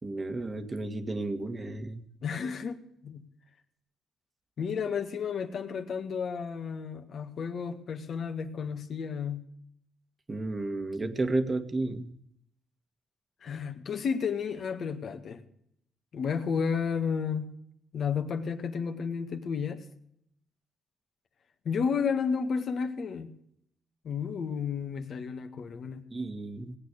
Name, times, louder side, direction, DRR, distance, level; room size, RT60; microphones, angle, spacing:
voice 1, 0.0-2.0 10.3-12.1 26.1-26.8, right 2 dB, 25° right, 9 dB, 1.7 m, -32 dB
voice 2, 2.2-3.2 4.6-9.4 13.4-15.4 16.1-17.5 17.9-19.8 21.7-23.4 24.0-26.1, left 6 dB, 55° left, 6 dB, 1.8 m, -32 dB
19.0 x 8.7 x 8.1 m, 0.73 s
cardioid pair, 90°, 0 cm